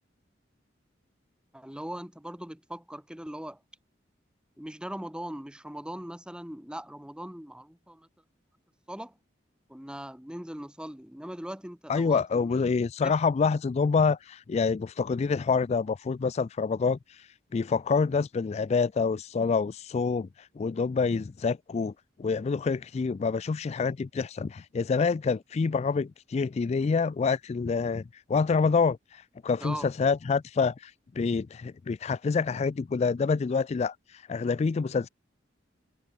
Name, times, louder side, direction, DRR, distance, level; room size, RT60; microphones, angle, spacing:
voice 1, 1.5-3.6 4.6-8.1 8.9-9.1 9.7-12.6 13.0-13.2 29.6-29.9, right 1 dB, 5° right, 1.0 m, -40 dB
voice 2, 11.9-21.9 22.2-28.0 28.3-35.1, left 5 dB, 35° left, 0.3 m, -27 dB
head